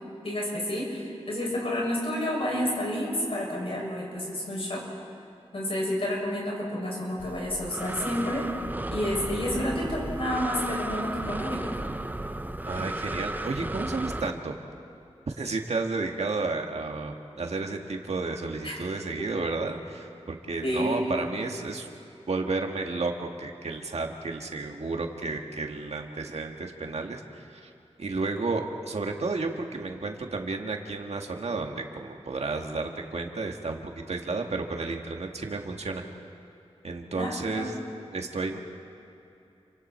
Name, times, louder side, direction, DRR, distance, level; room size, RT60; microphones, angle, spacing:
voice 1, 0.2-4.8 5.5-8.5 8.9-11.7 18.6-18.8 20.6-21.1 37.2-37.8, left 1 dB, 60° left, -3 dB, 7.2 m, -30 dB
Breathing, 7.2-14.3, right 1 dB, 15° right, 0.8 m, -34 dB
voice 2, 12.7-14.6 15.3-21.9 22.3-27.7 28.0-36.0 36.8-37.7 38.1-38.6, right 3 dB, 75° right, 2 dB, 1.9 m, -32 dB
30.0 x 25.0 x 4.5 m, 2.8 s
wide cardioid pair, 85°, 11 cm